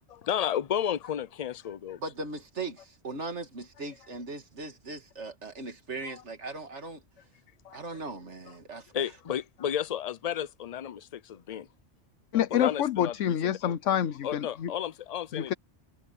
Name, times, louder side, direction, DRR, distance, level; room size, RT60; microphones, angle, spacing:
voice 1, 0.2-2.0 6.0-6.2 7.6-7.8 8.9-11.7 12.5-13.5 14.2-15.5, left 9 dB, 65° left, 0.4 m, -32 dB
voice 2, 2.0-7.0 7.7-8.9, right 3 dB, 70° right, 2.3 m, -39 dB
voice 3, 12.3-14.7 15.3-15.5, left 10 dB, 85° left, 1.1 m, -27 dB
omnidirectional pair, 1.2 m